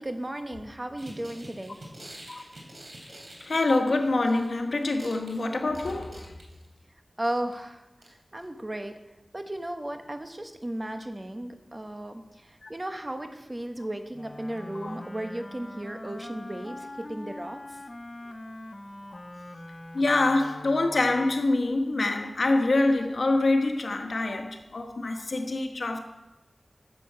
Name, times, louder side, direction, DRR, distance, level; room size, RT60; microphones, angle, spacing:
voice 1, 0.0-1.8 7.2-7.9 8.3-9.0 9.3-17.8, right 1 dB, 30° right, 1.1 m, -35 dB
sound 1, 1.0-4.6 4.8-6.8 7.2-7.5 8.0-8.1 8.4-8.5, right 1 dB, 80° right, 3.0 m, -47 dB
voice 2, 3.1-6.3 12.6-12.7 14.8-15.0 19.1-19.2 19.9-26.0, left 2 dB, 80° left, 1.2 m, -25 dB
Wind instrument woodwind instrument, 14.1-21.5, left 1 dB, 30° left, 0.6 m, -43 dB
10.0 x 7.7 x 6.8 m
wide cardioid pair, 75°, 0 cm